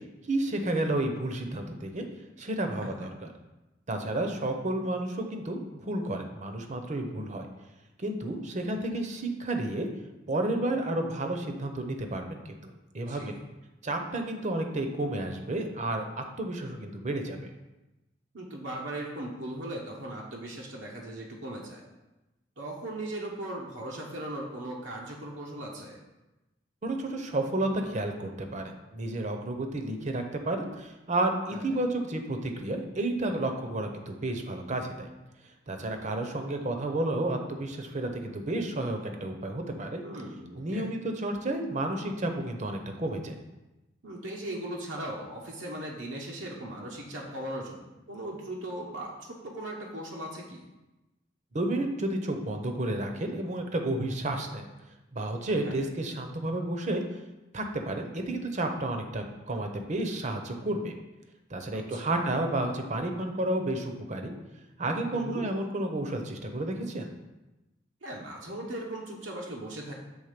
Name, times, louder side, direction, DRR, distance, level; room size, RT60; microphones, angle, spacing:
voice 1, 0.3-2.1 2.4-3.3 3.9-7.5 8.0-9.9 10.3-13.3 13.8-17.4 26.8-35.1 35.7-40.0 40.5-43.3 51.5-54.7 55.1-57.0 57.5-60.9 61.5-64.3 64.8-67.1, right 1 dB, 40° right, 4 dB, 0.8 m, -31 dB
voice 2, 2.7-3.1 13.1-13.4 18.3-21.8 22.6-26.0 31.5-31.8 40.0-40.9 44.0-50.7 55.6-55.8 61.7-62.2 65.1-65.4 68.0-69.9, right 1 dB, 85° right, -2 dB, 1.1 m, -38 dB
7.2 x 3.6 x 5.1 m, 1.0 s
head